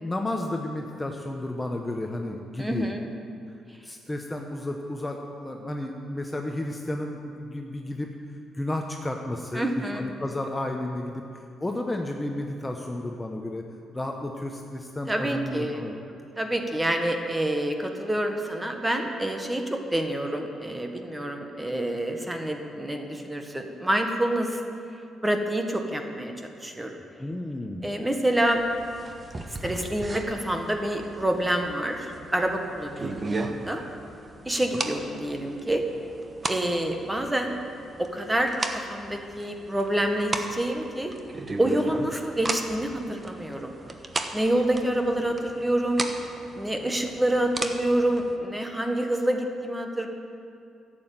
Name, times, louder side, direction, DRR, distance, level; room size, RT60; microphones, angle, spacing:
voice 1, 0.0-2.8 3.8-8.1 8.5-11.2 11.6-13.6 13.9-15.9 27.2-27.9, left 1 dB, 15° left, 2 dB, 1.0 m, -32 dB
voice 2, 2.6-3.1 9.5-10.1 15.1-15.8 16.4-24.6 25.2-27.0 27.8-28.6 29.6-33.8 34.4-35.8 36.5-37.6 38.0-41.1 41.6-43.7 44.3-46.0 46.5-50.1, right 1 dB, 10° right, 4 dB, 1.4 m, -27 dB
sound 1, 28.4-48.4, right 2 dB, 25° right, 1.1 m, -37 dB
12.0 x 8.0 x 9.0 m, 2.5 s
cardioid pair, 90°, 0 cm